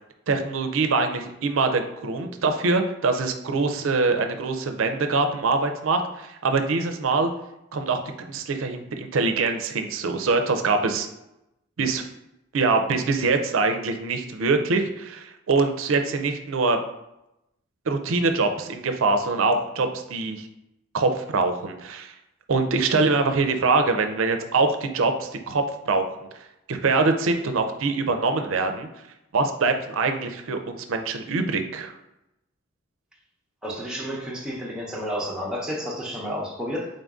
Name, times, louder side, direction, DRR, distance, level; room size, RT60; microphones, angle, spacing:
voice 1, 0.3-7.3 7.7-11.1 11.8-12.1 12.5-16.8 17.9-20.5 20.9-22.1 22.5-26.0 26.7-28.9 29.3-31.9, right 3 dB, 70° right, 6 dB, 0.5 m, -24 dB
voice 2, 33.6-36.9, equal, 5° right, -4 dB, 0.7 m, -31 dB
3.9 x 2.6 x 3.5 m, 0.87 s
head